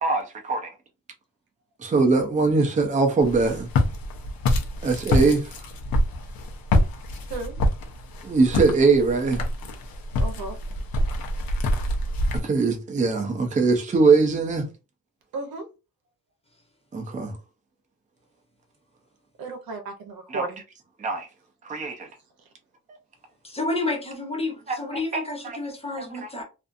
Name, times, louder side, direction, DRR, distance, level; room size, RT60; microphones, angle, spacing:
voice 1, 0.0-0.7 1.8-3.7 4.8-5.5 8.2-9.4 12.3-14.7 16.9-17.3 20.3-20.5 21.0-21.3 21.6-22.1 24.7-24.8 25.1-25.6 26.0-26.1, right 4 dB, 20° right, 0.5 m, -22 dB
Walk footsteps, 3.2-12.4, left 1 dB, 80° left, 0.7 m, -25 dB
voice 2, 10.2-10.6 15.3-15.6 19.4-20.6, right 3 dB, 90° right, 0.8 m, -34 dB
voice 3, 23.4-26.4, left 2 dB, 15° left, 0.8 m, -30 dB
2.5 x 2.3 x 2.5 m
wide cardioid pair, 160°, 34 cm